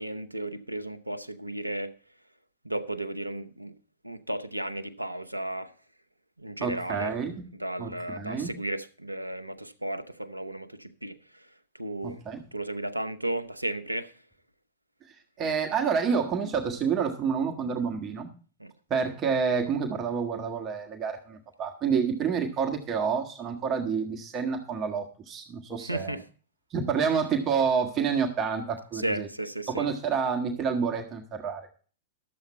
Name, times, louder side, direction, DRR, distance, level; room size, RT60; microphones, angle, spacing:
voice 1, 0.0-1.9 2.6-3.7 4.0-5.7 6.4-7.1 7.5-11.2 11.8-12.2 12.5-14.1 18.6-18.7 25.9-26.2 29.0-29.9, right 1 dB, 90° right, 0.8 m, -34 dB
voice 2, 6.6-7.4 7.8-8.5 12.0-12.4 15.0-18.3 18.9-26.2 26.7-29.3 29.7-31.7, right 6 dB, 25° right, 1.5 m, -28 dB
12.0 x 7.9 x 4.4 m
figure-of-eight pair, 100°, 0 cm